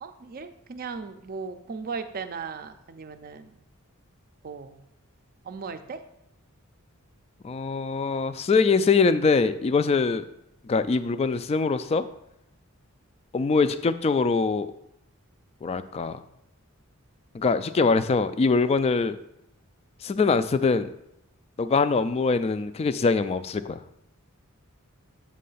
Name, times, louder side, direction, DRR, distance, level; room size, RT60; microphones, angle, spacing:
voice 1, 0.0-3.6 4.4-4.9 5.4-6.0, right 5 dB, 45° right, 9 dB, 0.5 m, -37 dB
voice 2, 7.4-10.3 10.6-12.0 13.3-14.7 15.6-16.2 17.3-19.2 20.0-20.9 21.6-23.8, left 4 dB, 30° left, 12 dB, 0.3 m, -23 dB
7.5 x 3.3 x 5.5 m, 0.80 s
head